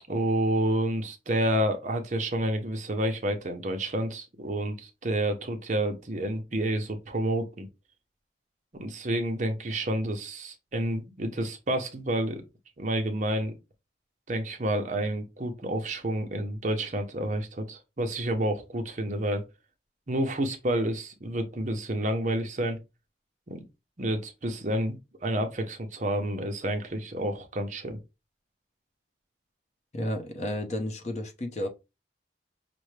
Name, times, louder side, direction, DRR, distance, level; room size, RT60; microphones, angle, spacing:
voice 1, 0.1-7.7 8.8-12.4 12.8-13.5 14.3-19.4 20.1-22.8 23.5-23.6 24.0-28.0, right 1 dB, 40° right, 0.8 m, -29 dB
voice 2, 29.9-31.7, left 1 dB, 40° left, 0.8 m, -32 dB
5.9 x 2.2 x 3.2 m
head